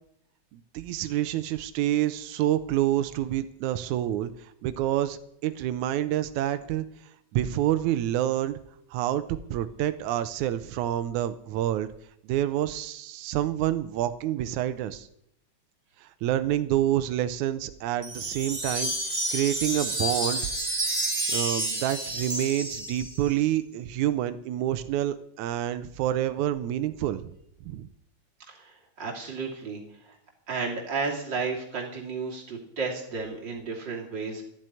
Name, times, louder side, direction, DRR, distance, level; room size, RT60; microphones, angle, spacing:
voice 1, 0.5-6.9 7.3-8.6 8.9-11.9 12.2-15.1 16.0-20.4 21.3-27.3 27.6-27.9, right 12 dB, 90° right, 12 dB, 2.1 m, -28 dB
Wind chime, 18.0-23.4, right 1 dB, 15° right, 1.6 m, -30 dB
voice 2, 28.5-30.2 30.5-34.4, right 4 dB, 35° right, -1 dB, 3.4 m, -33 dB
13.0 x 7.6 x 9.6 m, 0.74 s
omnidirectional pair, 3.4 m